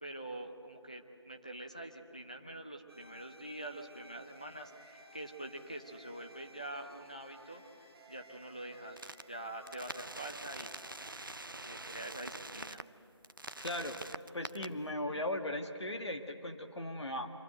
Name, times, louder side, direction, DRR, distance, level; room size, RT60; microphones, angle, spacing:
voice 1, 0.0-10.8 11.5-12.8, right 1 dB, 15° left, 3 dB, 0.7 m, -45 dB
sound 1, 2.9-11.3, right 1 dB, 5° right, 3.0 m, -58 dB
sound 2, 9.0-9.2 9.7-12.8 13.2-14.7, right 2 dB, 45° right, 0.6 m, -45 dB
voice 2, 13.6-14.0 14.3-17.3, left 1 dB, 70° left, 4 dB, 2.0 m, -38 dB
25.5 x 25.0 x 8.0 m, 2.6 s
figure-of-eight pair, 175°, 15 cm